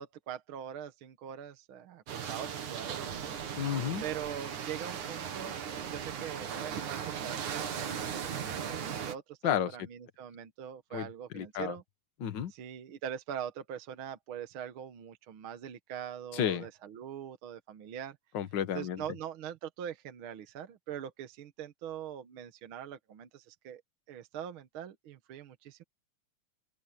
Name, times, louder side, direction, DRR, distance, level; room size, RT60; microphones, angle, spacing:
voice 1, 0.0-3.4 4.0-11.8 12.5-18.2 18.7-23.8 24.1-25.8, right 9 dB, 60° right, 1.6 m, -42 dB
sound 1, 2.1-9.1, right 8 dB, 85° right, 3.6 m, -37 dB
voice 2, 3.6-4.0 9.4-9.7 10.9-11.1 11.3-11.8 12.2-12.5 16.3-16.7 18.3-19.0, left 9 dB, 50° left, 1.6 m, -31 dB
open air
omnidirectional pair, 3.4 m